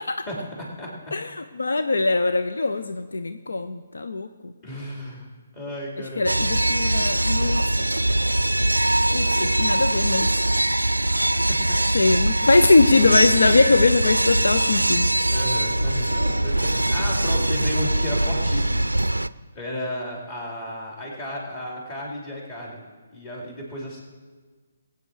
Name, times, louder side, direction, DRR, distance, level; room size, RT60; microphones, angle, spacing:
voice 1, 0.3-1.1 4.6-5.3 5.5-6.5 11.3-11.8 12.2-12.4 15.3-18.9 19.5-22.8 23.1-24.0, left 1 dB, 25° left, -3 dB, 4.2 m, -34 dB
voice 2, 1.1-4.5 6.2-7.6 9.1-10.3 11.9-15.1 16.0-16.1, left 3 dB, 70° left, 9 dB, 0.6 m, -21 dB
sound 1, 6.3-19.3, right 1 dB, 90° right, 0.4 m, -22 dB
20.5 x 9.1 x 4.9 m, 1.4 s
figure-of-eight pair, 140°, 0 cm